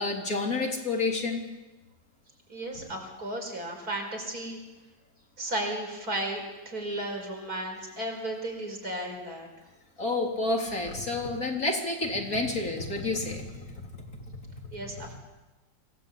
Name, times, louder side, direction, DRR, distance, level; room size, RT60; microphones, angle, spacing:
voice 1, 0.0-1.4 10.0-13.7 14.4-14.5, left 2 dB, 50° left, 1 dB, 4.0 m, -29 dB
voice 2, 2.5-4.6 5.4-9.5 14.7-15.2, right 1 dB, 55° right, 3 dB, 5.6 m, -34 dB
25.5 x 17.5 x 8.6 m, 1.1 s
omnidirectional pair, 2.0 m